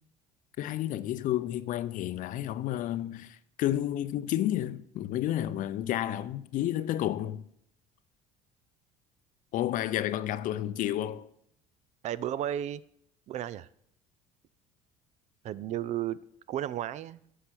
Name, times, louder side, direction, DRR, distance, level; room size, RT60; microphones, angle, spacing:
voice 1, 0.6-7.4 9.5-11.3, left 12 dB, 55° left, 0.6 m, -31 dB
voice 2, 12.0-12.8 13.3-13.7 15.4-16.2 16.5-17.2, right 11 dB, 50° right, 0.4 m, -33 dB
9.8 x 5.5 x 5.9 m
supercardioid pair, 90°, 16 cm